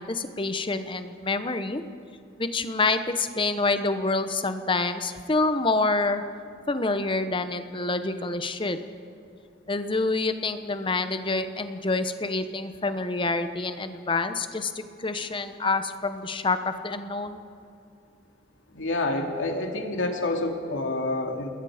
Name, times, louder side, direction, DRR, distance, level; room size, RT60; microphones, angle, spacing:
voice 1, 0.0-1.8 2.4-6.2 6.7-8.8 9.7-17.4, left 3 dB, 25° left, 9 dB, 1.0 m, -27 dB
voice 2, 18.7-21.5, left 2 dB, 75° left, 2 dB, 2.6 m, -28 dB
28.0 x 21.0 x 5.1 m, 2.5 s
head